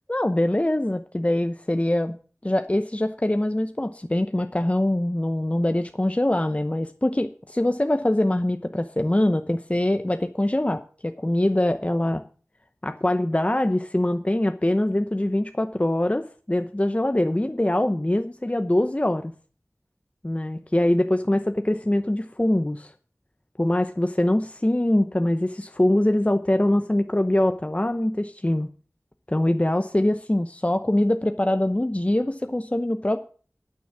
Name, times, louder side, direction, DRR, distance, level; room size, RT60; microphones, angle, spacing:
voice 1, 0.1-2.1 2.4-12.2 12.8-19.3 20.2-22.9 23.6-28.7 29.3-33.2, left 1 dB, 25° left, 8 dB, 0.8 m, -23 dB
9.4 x 9.3 x 7.4 m, 0.41 s
wide cardioid pair, 45°, 5 cm